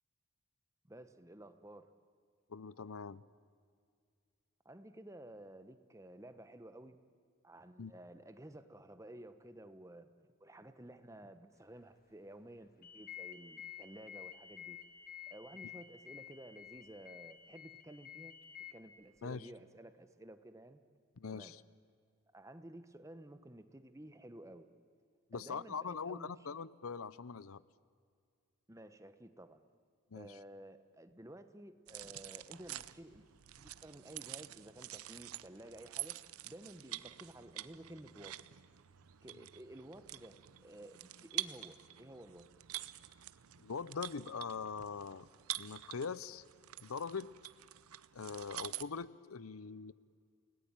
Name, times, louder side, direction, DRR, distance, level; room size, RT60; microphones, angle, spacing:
voice 1, 0.9-1.9 4.6-7.0 7.4-10.1 10.4-14.8 15.3-18.3 18.7-20.8 21.3-21.5 22.3-24.7 25.3-26.3 28.7-29.6 30.1-33.3 33.6-38.3 39.2-42.5, right 1 dB, 15° right, 10 dB, 1.0 m, -53 dB
voice 2, 2.5-3.2 7.8-7.9 19.2-19.5 21.2-21.6 25.3-27.6 30.1-30.4 43.6-45.3 45.6-46.4 46.8-47.3 48.1-49.9, left 5 dB, 80° left, 19 dB, 0.7 m, -42 dB
sound 1, 12.8-18.7, left 9 dB, 40° left, 1.0 m, -51 dB
sound 2, 31.9-48.8, right 15 dB, 85° right, 0.7 m, -47 dB
29.5 x 18.0 x 9.0 m, 2.2 s
head